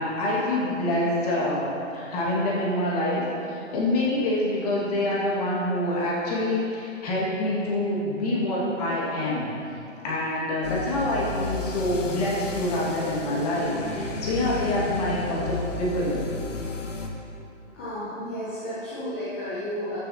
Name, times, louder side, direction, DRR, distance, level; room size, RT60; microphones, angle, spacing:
voice 1, 0.0-1.7 1.9-9.5 10.0-16.3, left 1 dB, 30° left, -5 dB, 1.8 m, -26 dB
sound 1, 10.6-17.1, left 3 dB, 75° left, 1.2 m, -32 dB
voice 2, 17.7-20.0, equal, 10° left, -11 dB, 0.5 m, -32 dB
13.0 x 6.6 x 2.8 m, 2.7 s
hypercardioid pair, 160°, 38 cm